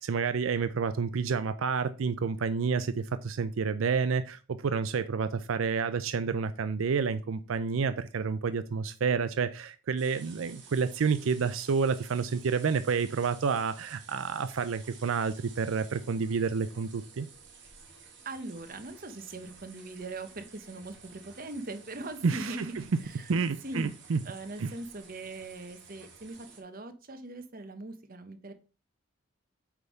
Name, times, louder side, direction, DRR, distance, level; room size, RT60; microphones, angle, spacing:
voice 1, 0.0-17.3 22.2-22.8 23.3-24.2 24.6-24.7, right 5 dB, 85° right, 0.5 m, -29 dB
sound 1, 10.0-26.6, right 5 dB, 60° right, 2.2 m, -53 dB
voice 2, 18.2-23.9 24.2-28.5, right 2 dB, 45° right, 1.0 m, -41 dB
8.1 x 3.4 x 5.4 m
head